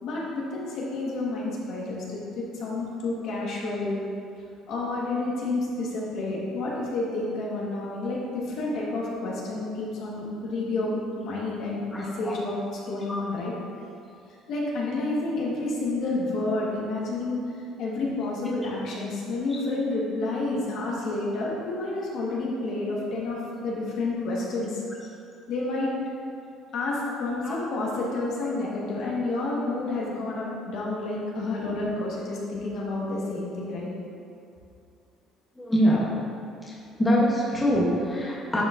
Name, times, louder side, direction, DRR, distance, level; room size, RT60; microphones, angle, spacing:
voice 1, 0.0-4.0 4.7-12.6 12.9-13.5 14.5-17.4 17.8-24.8 25.5-25.9 26.7-33.9, left 2 dB, 60° left, -4 dB, 1.3 m, -30 dB
voice 2, 11.9-12.3 27.4-27.5 35.6-36.0 36.7-38.6, equal, 10° left, -6 dB, 0.8 m, -24 dB
9.8 x 4.7 x 2.5 m, 2.5 s
cardioid pair, 155°, 0 cm